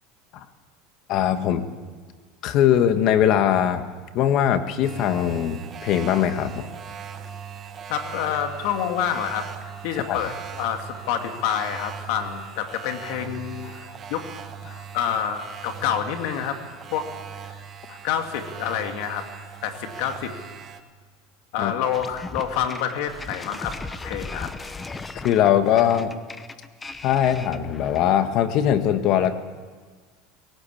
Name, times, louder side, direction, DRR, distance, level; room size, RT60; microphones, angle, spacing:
voice 1, 1.1-1.6 2.4-3.8 4.1-6.7 10.0-10.2 13.7-13.9 14.7-14.8 17.9-18.0 21.6-21.7 25.2-26.1 27.0-29.3, left 10 dB, 50° left, 9 dB, 1.5 m, -21 dB
sound 1, 4.8-20.8, right 7 dB, 30° right, 1.3 m, -39 dB
voice 2, 7.9-9.5 9.8-13.7 14.1-14.3 14.9-16.6 16.9-17.1 17.4-17.6 18.0-19.3 19.6-20.3 21.5-23.8 24.0-24.5, left 9 dB, 65° left, 5 dB, 2.5 m, -27 dB
sound 2, 21.9-28.2, left 3 dB, 15° left, 0.9 m, -37 dB
20.0 x 18.0 x 8.6 m, 1.5 s
supercardioid pair, 155°, 0 cm